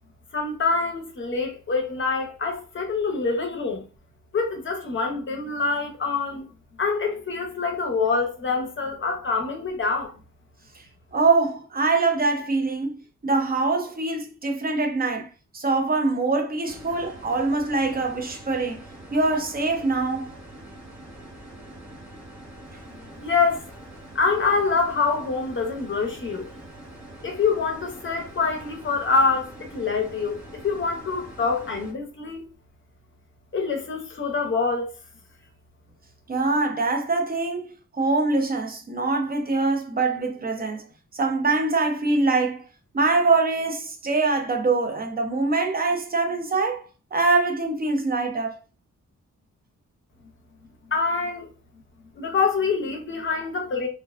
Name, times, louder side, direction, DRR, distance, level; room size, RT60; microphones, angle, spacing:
voice 1, 0.3-3.9 4.3-6.5 6.8-10.1 23.2-23.6 24.1-26.5 27.2-32.4 33.5-34.9 50.9-51.5 52.2-53.9, left 4 dB, 40° left, 0.6 m, -25 dB
voice 2, 11.1-18.8 19.1-20.3 36.3-40.9 41.1-42.6 42.9-46.8 47.1-48.6, right 3 dB, 30° right, 0.5 m, -24 dB
sound 1, 16.7-31.9, right 1 dB, 55° right, 1.1 m, -44 dB
2.5 x 2.1 x 2.3 m
wide cardioid pair, 130°, 31 cm